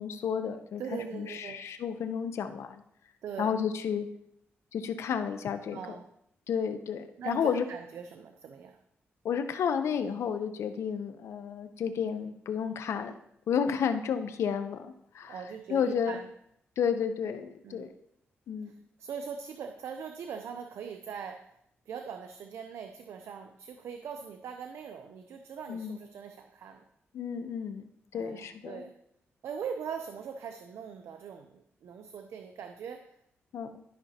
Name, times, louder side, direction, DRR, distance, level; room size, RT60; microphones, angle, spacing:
voice 1, 0.0-0.8 1.1-2.8 3.4-4.1 4.7-6.0 6.5-7.7 9.2-13.1 13.5-15.4 15.7-16.2 16.8-17.9 18.5-18.7 25.7-26.0 27.1-28.8 33.5-33.8, left 7 dB, 80° left, 9 dB, 0.7 m, -31 dB
voice 2, 0.8-1.7 3.2-3.5 5.7-6.1 7.2-8.8 15.2-16.3 17.6-17.9 18.6-21.5 21.9-26.8 28.1-28.9 29.4-33.2, right 7 dB, 80° right, 6 dB, 0.5 m, -41 dB
12.5 x 5.9 x 2.8 m, 0.76 s
cardioid pair, 85°, 5 cm